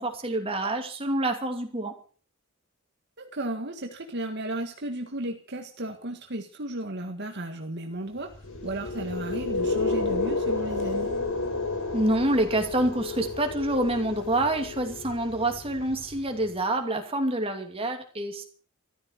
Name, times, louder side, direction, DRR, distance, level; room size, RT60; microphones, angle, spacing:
voice 1, 0.0-1.9 11.9-18.4, right 1 dB, 25° right, 4 dB, 2.7 m, -27 dB
voice 2, 3.2-8.3 8.6-11.1, right 1 dB, 50° right, 4 dB, 1.8 m, -34 dB
sound 1, 8.3-16.4, left 3 dB, 75° left, 5.0 m, -31 dB
14.0 x 13.0 x 6.5 m, 0.41 s
head